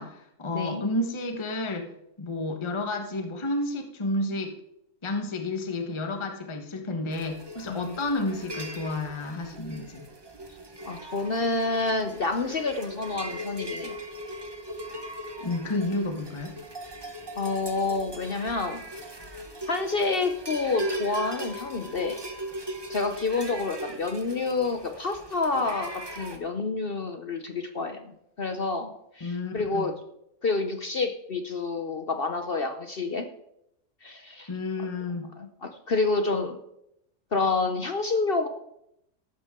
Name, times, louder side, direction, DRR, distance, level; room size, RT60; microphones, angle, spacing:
voice 1, 0.0-1.9 2.2-4.5 5.0-10.0 15.4-16.5 29.2-29.9 34.5-35.3, left 2 dB, 20° left, 4 dB, 1.2 m, -31 dB
sound 1, 7.1-26.4, right 1 dB, 20° right, 1.1 m, -39 dB
voice 2, 10.9-14.0 17.4-18.8 19.7-22.2 22.9-28.1 28.4-29.9 30.4-33.3 34.0-34.5 35.4-36.6 37.3-38.5, left 3 dB, 45° left, 7 dB, 0.8 m, -28 dB
14.0 x 11.5 x 3.7 m, 0.80 s
omnidirectional pair, 1.6 m